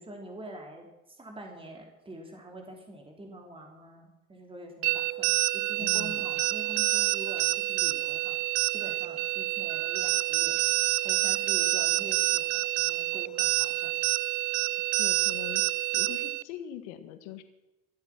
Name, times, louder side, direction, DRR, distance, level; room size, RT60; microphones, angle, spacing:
voice 1, 0.0-10.6 11.0-13.9, right 1 dB, 15° right, 1 dB, 3.4 m, -45 dB
sound 1, 4.8-16.4, right 19 dB, 60° right, 0.7 m, -27 dB
voice 2, 5.8-6.3 15.0-17.4, left 11 dB, 75° left, 9 dB, 1.8 m, -42 dB
24.5 x 8.2 x 6.1 m, 1.0 s
hypercardioid pair, 75°, 34 cm